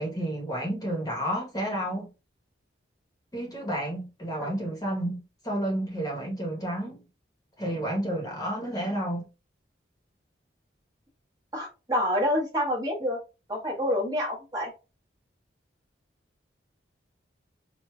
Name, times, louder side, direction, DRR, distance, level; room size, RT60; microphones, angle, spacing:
voice 1, 0.0-2.1 3.3-7.0 7.6-9.3, right 1 dB, 20° left, 1.0 m, -31 dB
voice 2, 11.5-13.2 13.5-14.7, equal, 20° right, 0.9 m, -27 dB
4.5 x 2.5 x 2.3 m
head